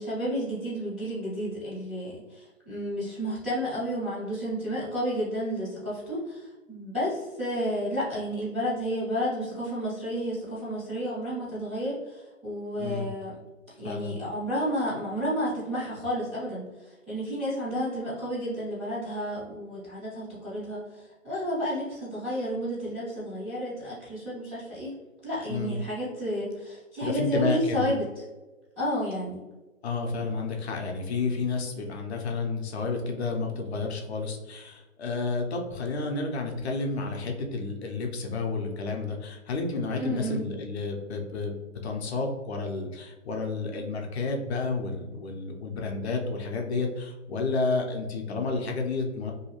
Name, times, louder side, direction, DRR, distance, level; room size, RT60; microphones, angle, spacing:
voice 1, 0.0-13.3 13.8-24.9 25.2-28.0 28.8-29.4 40.0-40.4, equal, 10° right, -15 dB, 0.4 m, -31 dB
voice 2, 12.8-13.1 13.8-14.2 25.5-25.8 27.0-27.9 29.8-41.5 41.8-49.3, left 3 dB, 55° left, 2 dB, 0.6 m, -31 dB
2.7 x 2.3 x 2.8 m, 1.1 s
hypercardioid pair, 150°, 40 cm